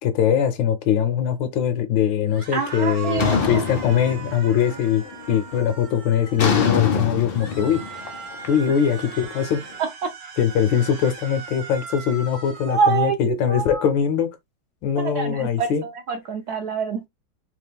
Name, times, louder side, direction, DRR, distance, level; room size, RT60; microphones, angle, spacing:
voice 1, 0.0-7.8 8.5-9.6 10.4-14.3 14.8-15.8, left 8 dB, 70° left, 1.4 m, -22 dB
sound 1, 2.3-6.8 7.3-13.0, right 5 dB, 50° right, 1.5 m, -39 dB
voice 2, 2.5-3.6 9.8-10.1 12.7-13.8 15.0-17.1, right 6 dB, 65° right, 1.0 m, -25 dB
sound 2, 3.2-4.7 5.1-5.5 6.4-9.4, left 6 dB, 90° left, 0.5 m, -25 dB
3.5 x 3.1 x 3.5 m
omnidirectional pair, 2.2 m